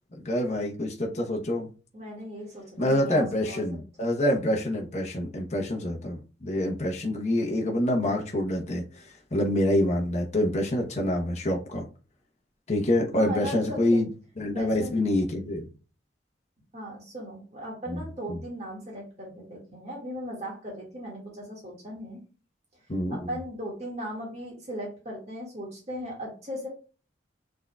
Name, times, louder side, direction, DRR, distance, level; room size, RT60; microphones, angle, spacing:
voice 1, 0.1-1.7 2.8-9.0 9.3-11.8 12.7-14.1 14.4-15.7 17.9-18.4 22.9-23.3, left 1 dB, 40° left, 0 dB, 0.9 m, -26 dB
voice 2, 1.9-3.8 13.1-14.0 14.5-14.9 16.7-22.2 23.1-26.7, equal, 40° right, -2 dB, 1.9 m, -37 dB
6.2 x 3.7 x 2.3 m, 0.35 s
head